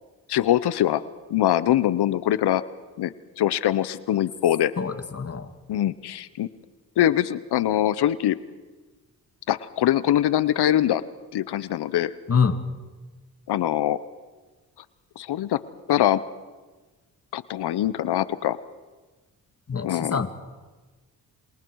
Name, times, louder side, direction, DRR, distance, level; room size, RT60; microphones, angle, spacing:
voice 1, 0.3-1.0 1.3-2.6 3.0-4.7 5.7-6.5 7.0-8.4 9.5-11.0 11.3-12.1 13.5-14.0 15.2-15.6 15.9-16.2 17.3-18.6 19.8-20.2, left 12 dB, 80° left, 16 dB, 0.9 m, -23 dB
voice 2, 4.8-5.5 12.3-12.6 19.7-20.3, left 6 dB, 40° left, 9 dB, 1.8 m, -25 dB
28.5 x 27.0 x 4.7 m, 1.3 s
cardioid pair, 75°, 39 cm